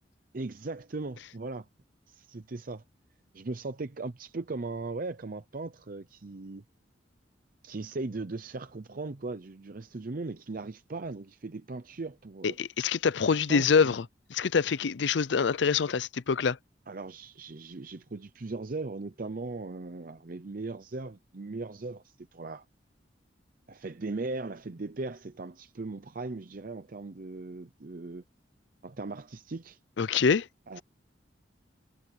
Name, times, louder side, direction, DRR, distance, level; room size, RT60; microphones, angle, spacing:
voice 1, 0.3-1.7 2.1-2.8 3.3-6.6 7.6-12.6 13.3-13.9 16.9-22.6 23.7-28.2 28.8-29.8 30.7-30.8, right 3 dB, 50° right, 0.7 m, -38 dB
voice 2, 12.4-14.0 14.3-16.6 30.0-30.5, left 5 dB, 70° left, 0.5 m, -25 dB
head